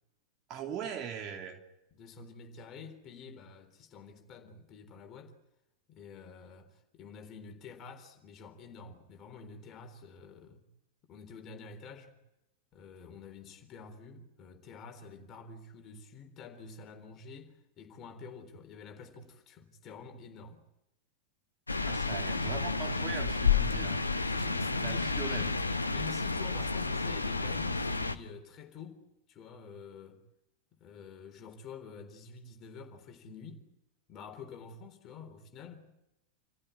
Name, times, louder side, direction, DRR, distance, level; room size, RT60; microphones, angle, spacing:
voice 1, 0.5-1.6 21.9-24.0 24.8-25.5, right 8 dB, 35° right, 3.1 m, -40 dB
voice 2, 1.9-5.4 5.9-10.6 11.1-12.2 12.7-20.6 23.5-23.8 24.3-25.4 25.9-30.2 30.8-33.7 34.1-36.0, left 5 dB, 30° left, 3.8 m, -48 dB
sound 1, 21.7-28.2, left 4 dB, 80° left, 1.1 m, -31 dB
28.0 x 15.0 x 9.8 m
figure-of-eight pair, 90°, 0 cm